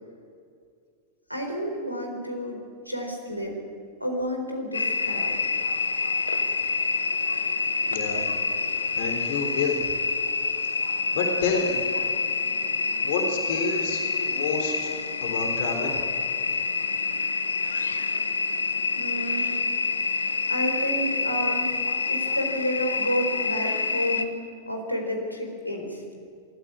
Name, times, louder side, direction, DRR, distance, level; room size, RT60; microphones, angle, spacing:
voice 1, 1.3-2.6 2.9-3.6 4.0-5.4 18.9-19.6 20.0-21.8 22.1-24.3 24.7-26.0, equal, 90° left, 1 dB, 4.1 m, -30 dB
sound 1, 4.7-24.3, left 4 dB, 75° left, 1.1 m, -27 dB
voice 2, 7.9-8.2 9.0-9.8 11.1-11.8 13.0-14.9 15.2-16.0, left 4 dB, 55° left, 3 dB, 3.5 m, -28 dB
25.0 x 14.5 x 9.7 m, 2.3 s
figure-of-eight pair, 90°, 0 cm